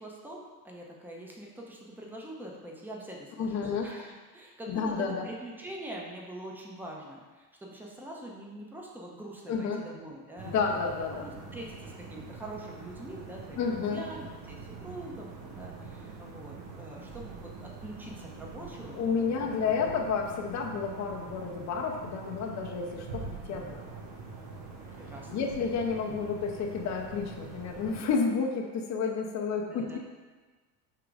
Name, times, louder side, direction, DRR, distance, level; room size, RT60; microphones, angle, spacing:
voice 1, 0.0-10.5 11.1-19.0 19.3-19.7 21.3-21.7 23.5-23.9 24.9-25.4 26.1-26.2 29.7-30.0, right 1 dB, 5° right, -2 dB, 0.8 m, -44 dB
voice 2, 3.4-3.9 4.7-5.3 9.5-9.8 10.4-11.3 13.6-14.0 19.0-23.8 25.3-30.0, left 5 dB, 35° left, 1 dB, 0.8 m, -31 dB
sound 1, 10.4-28.1, right 4 dB, 55° right, 1.0 m, -44 dB
3.8 x 2.9 x 4.7 m, 1.3 s
hypercardioid pair, 75°, 48 cm